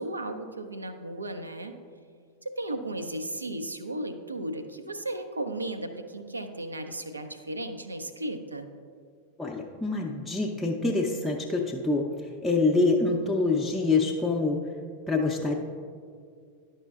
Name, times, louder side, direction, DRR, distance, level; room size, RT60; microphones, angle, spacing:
voice 1, 0.0-1.7 2.4-8.7, right 1 dB, 80° right, 8 dB, 0.4 m, -35 dB
voice 2, 9.4-12.1 12.4-14.6 15.1-15.5, left 3 dB, 5° left, -3 dB, 0.5 m, -25 dB
10.5 x 5.5 x 2.4 m, 2.2 s
figure-of-eight pair, 90°, 0 cm